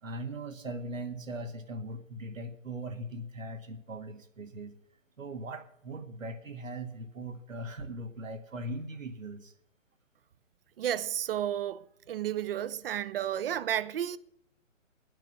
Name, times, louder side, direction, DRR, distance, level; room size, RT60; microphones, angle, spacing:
voice 1, 0.0-4.8 5.2-9.5, right 1 dB, 75° right, 1.9 m, -40 dB
voice 2, 10.8-14.2, right 10 dB, 45° right, 0.7 m, -32 dB
10.0 x 9.0 x 9.0 m
figure-of-eight pair, 140°, 39 cm